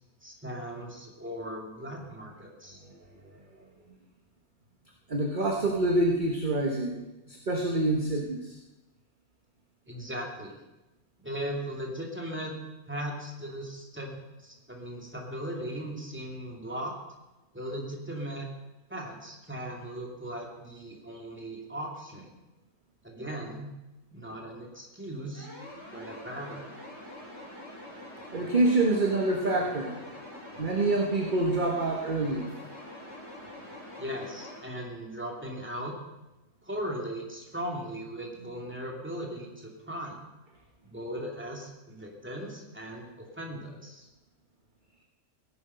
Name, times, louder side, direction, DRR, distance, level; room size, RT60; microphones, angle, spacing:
voice 1, 0.2-2.8 9.9-10.6 11.2-12.5 12.9-17.0 17.5-18.5 18.9-22.3 23.0-23.7 24.1-25.5 25.9-26.7 34.0-35.9 36.6-40.2 40.8-44.1, equal, 10° right, -1 dB, 2.7 m, -38 dB
voice 2, 5.1-8.5 28.3-29.9 30.6-32.5, right 2 dB, 35° right, 1 dB, 1.4 m, -26 dB
sound 1, 25.3-34.6, left 1 dB, 45° left, 5.3 m, -45 dB
16.5 x 10.5 x 5.6 m, 1.0 s
omnidirectional pair, 1.5 m